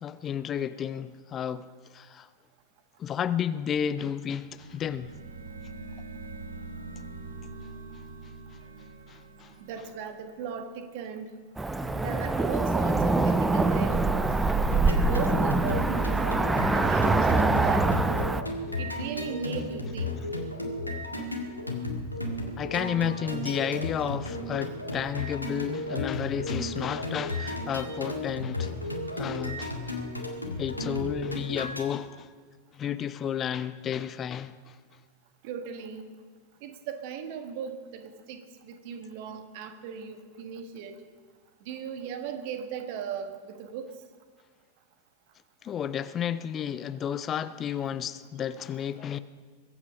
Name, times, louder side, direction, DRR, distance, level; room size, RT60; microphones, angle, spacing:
voice 1, 0.0-1.7 1.9-2.3 3.0-5.1 9.1-9.5 22.6-30.0 30.6-32.3 32.7-34.7 45.6-49.2, left 9 dB, 25° left, 0.5 m, -32 dB
sound 1, 4.3-11.0, right 3 dB, 65° right, 1.5 m, -44 dB
voice 2, 9.6-11.3 11.9-14.4 14.8-16.2 16.7-17.9 18.8-20.3 35.4-36.1 36.6-41.0 41.6-44.0, right 7 dB, 50° right, 1.5 m, -37 dB
Cricket / Motor vehicle (road), 11.6-18.4, right 2 dB, 10° right, 0.7 m, -24 dB
sound 2, 14.7-31.9, left 1 dB, 90° left, 1.7 m, -34 dB
22.0 x 8.6 x 5.5 m
figure-of-eight pair, 90°, 0 cm